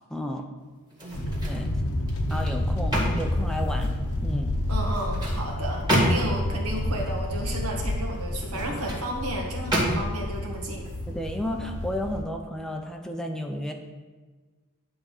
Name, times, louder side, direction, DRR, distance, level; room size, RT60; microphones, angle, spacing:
voice 1, 0.1-0.5 1.5-1.7 2.3-3.9 4.2-4.5 11.1-13.7, left 1 dB, 5° left, 3 dB, 0.6 m, -32 dB
sound 1, 0.9-1.7 2.1-4.0 4.8-6.5 8.3-9.1 9.7-10.3 10.8-11.0, equal, 20° right, 2.0 m, -28 dB
sound 2, 1.1-12.2, left 1 dB, 70° left, 0.9 m, -30 dB
voice 2, 4.7-10.9, right 1 dB, 80° right, 0 dB, 1.8 m, -33 dB
11.0 x 3.6 x 6.5 m, 1.4 s
head